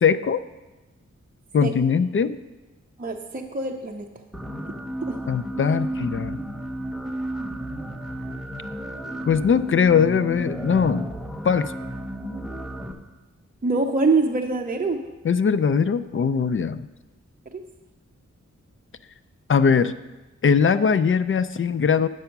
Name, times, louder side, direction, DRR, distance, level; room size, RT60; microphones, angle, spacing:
voice 1, 0.0-0.4 1.5-2.4 5.3-6.4 9.2-11.1 11.4-11.7 15.2-16.9 19.5-19.9 20.4-22.1, left 6 dB, 45° left, 12 dB, 0.4 m, -20 dB
voice 2, 3.0-4.1 5.1-5.2 13.6-15.0 17.5-17.6, right 3 dB, 30° right, 1 dB, 0.6 m, -24 dB
sound 1, 4.3-12.9, right 1 dB, ahead, 0.8 m, -32 dB
8.9 x 6.2 x 5.8 m, 1.1 s
wide cardioid pair, 95°, 29 cm